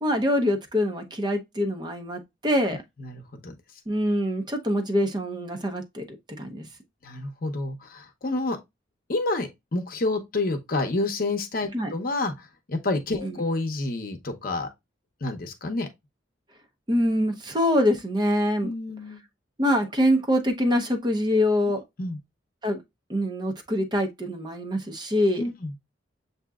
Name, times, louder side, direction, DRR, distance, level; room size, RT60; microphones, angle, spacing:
voice 1, 0.0-2.8 3.9-6.1 6.4-6.7 11.7-11.9 13.2-13.4 16.9-18.7 19.6-21.8 22.6-22.8 23.1-25.4, left 1 dB, 25° right, 0.7 m, -24 dB
voice 2, 3.0-3.5 7.0-8.6 9.1-14.7 15.2-15.9 18.6-19.2 22.0-22.2 25.4-25.7, left 2 dB, 50° left, 0.8 m, -29 dB
7.1 x 2.7 x 2.3 m
head